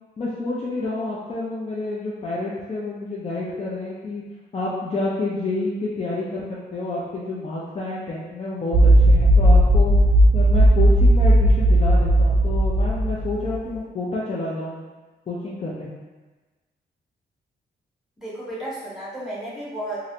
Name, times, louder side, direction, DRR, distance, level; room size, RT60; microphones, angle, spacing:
voice 1, 0.2-4.2 4.5-6.4 6.7-9.9 10.3-14.8 15.3-15.9, left 2 dB, 35° left, -6 dB, 0.5 m, -29 dB
sound 1, 8.7-13.6, right 1 dB, 55° right, 0.4 m, -16 dB
voice 2, 18.2-20.0, right 1 dB, ahead, -8 dB, 1.2 m, -33 dB
3.1 x 2.5 x 2.7 m, 1.3 s
cardioid pair, 100°, 19 cm